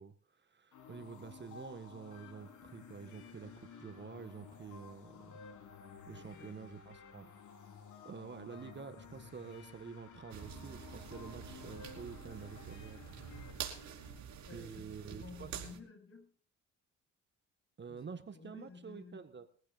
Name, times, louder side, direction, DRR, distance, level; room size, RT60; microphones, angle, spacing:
voice 1, 0.0-5.4 6.1-7.3 8.0-13.0 14.5-15.5 17.8-19.5, right 6 dB, 35° right, 8 dB, 1.7 m, -48 dB
sound 1, 0.7-14.2, left 5 dB, 75° left, 4.4 m, -54 dB
voice 2, 6.1-6.6 14.5-16.3 17.9-18.0 18.3-19.3, left 4 dB, 45° left, 5 dB, 7.7 m, -53 dB
sound 2, 10.3-15.8, right 8 dB, 70° right, 4.2 m, -47 dB
22.0 x 15.0 x 2.6 m, 0.41 s
cardioid pair, 90°, 30 cm